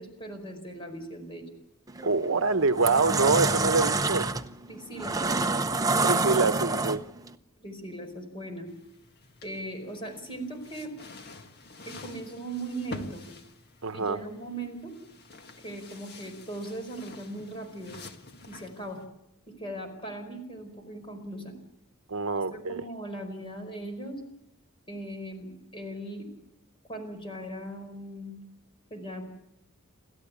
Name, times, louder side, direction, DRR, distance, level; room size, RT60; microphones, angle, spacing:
voice 1, 0.0-1.5 4.6-5.6 7.6-8.7 9.4-11.0 11.8-13.3 13.9-14.9 15.6-18.0 18.5-19.0 19.5-21.5 22.5-24.2 24.9-26.3 26.9-28.3 28.9-29.2, right 1 dB, 25° left, 4.9 m, -39 dB
sound 1, 1.9-2.1 2.6-7.3, right 3 dB, 15° right, 0.7 m, -27 dB
voice 2, 2.0-4.3 6.0-7.0 13.8-14.2 22.1-22.8, right 3 dB, 65° right, 1.0 m, -25 dB
sound 2, 8.7-19.1, left 2 dB, 50° left, 1.8 m, -47 dB
29.5 x 13.5 x 8.5 m
head